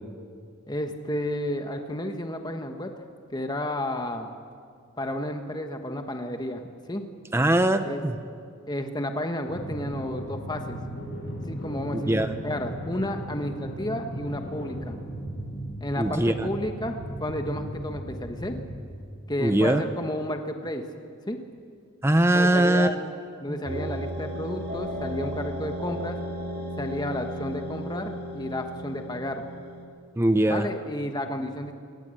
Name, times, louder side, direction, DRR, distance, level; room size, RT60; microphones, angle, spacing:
voice 1, 0.7-2.9 3.3-4.3 5.0-6.6 6.9-7.0 7.8-8.0 8.7-10.8 11.5-15.0 15.8-18.6 19.3-20.8 21.3-21.4 22.3-23.0 23.4-26.2 26.8-29.4 30.5-31.7, left 1 dB, 20° left, 5 dB, 1.3 m, -32 dB
voice 2, 7.3-8.2 11.9-12.3 16.0-16.5 19.4-19.8 22.0-22.9 23.5-23.6 30.2-30.7, right 1 dB, 10° right, 9 dB, 0.7 m, -21 dB
sound 1, 9.5-18.8, equal, 65° left, 7.5 m, -36 dB
sound 2, 23.7-29.9, equal, 45° right, 2.5 m, -34 dB
26.0 x 20.0 x 7.8 m, 2.2 s
head